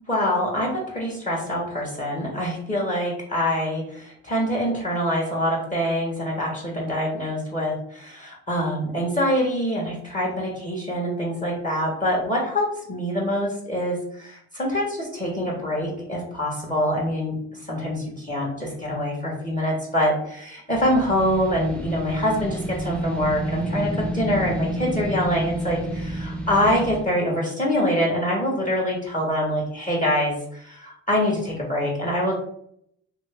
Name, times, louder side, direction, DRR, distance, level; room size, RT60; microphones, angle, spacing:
voice 1, 0.1-17.4 17.7-32.3, equal, 25° left, -2 dB, 1.0 m, -25 dB
sound 1, 20.7-27.1, right 1 dB, 5° left, 0.6 m, -30 dB
2.7 x 2.6 x 3.3 m, 0.69 s
cardioid pair, 90°, 30 cm